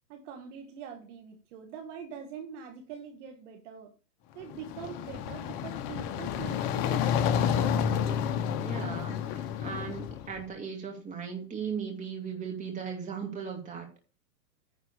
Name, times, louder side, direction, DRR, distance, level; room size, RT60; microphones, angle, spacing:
voice 1, 0.1-3.9 4.4-7.4, right 7 dB, 45° right, 2.0 m, -44 dB
sound 1, 4.4-10.4, left 8 dB, 25° left, 0.8 m, -30 dB
voice 2, 8.6-13.9, right 6 dB, 15° right, 2.4 m, -37 dB
10.0 x 4.3 x 7.0 m
hypercardioid pair, 145°, 49 cm